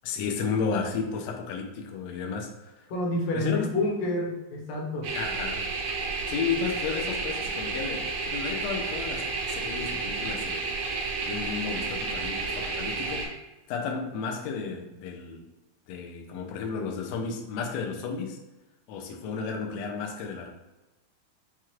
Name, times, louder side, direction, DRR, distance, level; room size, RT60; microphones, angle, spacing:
voice 1, 0.0-2.7 3.3-3.7 5.1-5.6 6.3-10.7 11.2-13.4 13.7-15.5 15.9-18.4 18.9-20.5, left 5 dB, 85° left, 1 dB, 1.5 m, -33 dB
voice 2, 2.9-5.1, left 2 dB, 65° left, -2 dB, 1.7 m, -29 dB
sound 1, 5.0-13.3, right 4 dB, 75° right, 1.5 m, -31 dB
6.0 x 2.4 x 2.9 m, 1.1 s
omnidirectional pair, 3.7 m